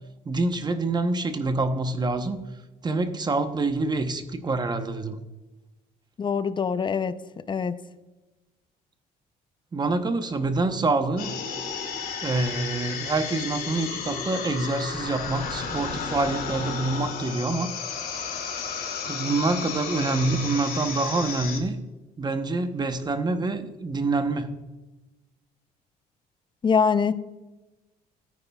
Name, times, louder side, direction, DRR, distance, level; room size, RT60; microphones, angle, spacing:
voice 1, 0.2-2.4 2.8-5.2 9.7-11.4 12.2-17.7 19.1-21.8 22.2-24.6, right 3 dB, 25° right, 8 dB, 0.9 m, -26 dB
voice 2, 6.2-7.2 7.5-7.8 26.6-27.1, left 6 dB, 30° left, 13 dB, 0.5 m, -23 dB
sound 1, 11.2-21.6, left 6 dB, 60° left, 2.5 m, -33 dB
15.0 x 9.5 x 2.3 m, 1.1 s
cardioid pair, 110°, 17 cm